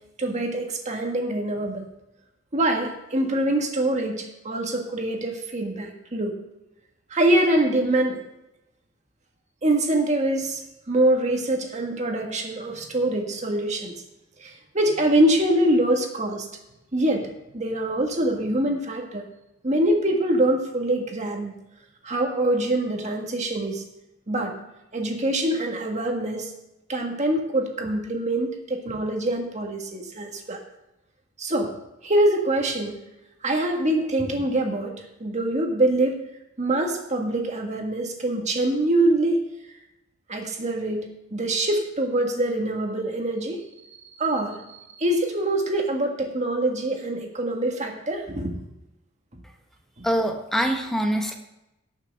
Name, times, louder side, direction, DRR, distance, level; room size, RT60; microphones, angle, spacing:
voice 1, 0.2-1.9 2.5-6.4 7.1-8.2 9.6-14.0 14.4-16.5 16.9-17.3 17.5-19.2 19.6-21.6 22.0-23.8 24.3-24.5 24.9-26.5 26.9-30.6 31.4-31.7 32.0-33.0 33.4-34.9 35.2-36.2 36.6-39.4 40.3-43.6 44.2-48.6, right 1 dB, 35° right, 2 dB, 1.7 m, -24 dB
voice 2, 50.0-51.3, equal, ahead, 2 dB, 1.3 m, -24 dB
18.0 x 6.6 x 3.6 m, 0.91 s
head